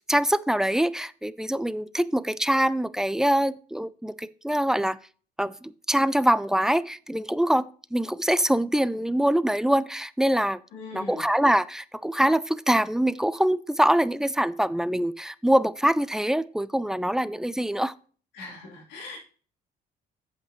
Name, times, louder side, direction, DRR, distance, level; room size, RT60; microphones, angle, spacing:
voice 1, 0.1-5.0 5.4-10.6 10.9-17.9, right 1 dB, 5° right, 16 dB, 0.4 m, -24 dB
voice 2, 10.7-11.2 18.3-19.3, left 3 dB, 90° left, -1 dB, 3.4 m, -40 dB
8.3 x 8.1 x 3.1 m, 0.40 s
cardioid pair, 110°, 17 cm